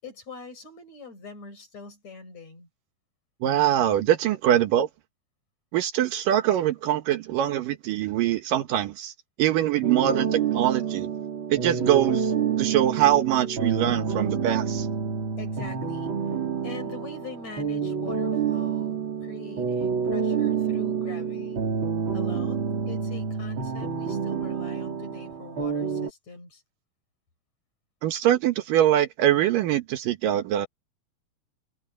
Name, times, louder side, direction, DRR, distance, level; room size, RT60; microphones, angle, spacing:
voice 1, 0.0-2.7 15.4-16.1 16.6-21.6 22.1-26.6, left 3 dB, 50° left, 6.3 m, -43 dB
voice 2, 3.4-4.9 5.7-9.1 9.4-11.1 11.5-12.3 12.6-14.9 28.0-30.7, right 12 dB, 70° right, 2.7 m, -23 dB
sound 1, 9.8-26.1, right 6 dB, 35° right, 3.2 m, -28 dB
omnidirectional pair, 4.1 m